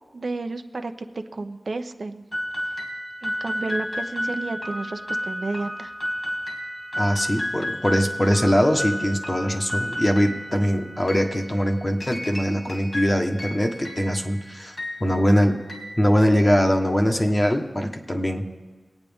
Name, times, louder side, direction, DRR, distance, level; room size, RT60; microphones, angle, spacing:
voice 1, 0.1-2.2 3.2-5.9, right 3 dB, 65° right, 6 dB, 0.7 m, -31 dB
sound 1, 2.3-16.8, equal, 45° left, 2.6 m, -32 dB
voice 2, 7.0-15.6 16.0-18.4, equal, 25° left, 4 dB, 1.2 m, -22 dB
23.5 x 9.0 x 3.6 m, 1.3 s
wide cardioid pair, 70°, 0 cm